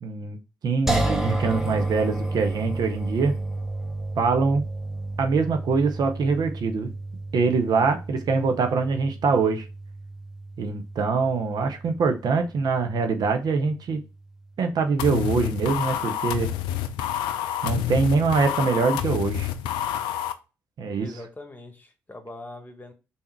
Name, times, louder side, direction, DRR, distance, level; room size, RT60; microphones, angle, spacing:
voice 1, 0.0-0.4 0.6-3.4 4.2-4.6 5.2-6.9 7.3-9.7 10.6-14.0 14.6-16.5 17.6-19.5 20.8-21.1, right 4 dB, 60° right, 0.6 m, -24 dB
sound 1, 0.9-13.9, right 2 dB, 5° right, 0.9 m, -32 dB
sound 2, 15.0-20.3, left 11 dB, 75° left, 0.4 m, -28 dB
voice 2, 20.9-22.9, left 2 dB, 20° left, 1.1 m, -42 dB
3.5 x 2.7 x 4.4 m
hypercardioid pair, 40°, 8 cm